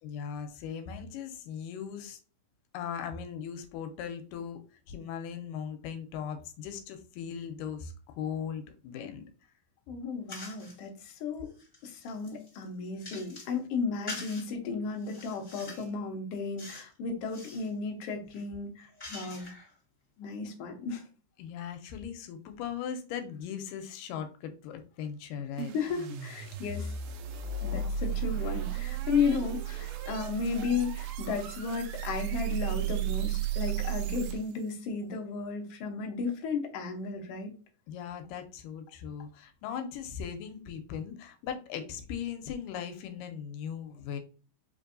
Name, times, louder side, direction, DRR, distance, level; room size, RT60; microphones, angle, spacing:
voice 1, 0.0-2.2 2.7-4.6 4.9-9.3 21.4-25.7 37.9-44.2, left 8 dB, 90° left, 7 dB, 2.2 m, -38 dB
voice 2, 9.9-11.5 11.8-19.5 20.2-21.1 25.7-26.9 27.6-37.5, left 5 dB, 70° left, 2 dB, 1.5 m, -34 dB
sound 1, 10.3-10.8 11.3-13.6 14.1-14.5 15.0-15.9 16.6-16.9 17.2-17.7 18.3-19.7, left 2 dB, 25° left, 0.8 m, -45 dB
sound 2, 25.6-34.7, right 8 dB, 80° right, 2.0 m, -34 dB
5.0 x 2.6 x 2.5 m, 0.36 s
omnidirectional pair, 3.8 m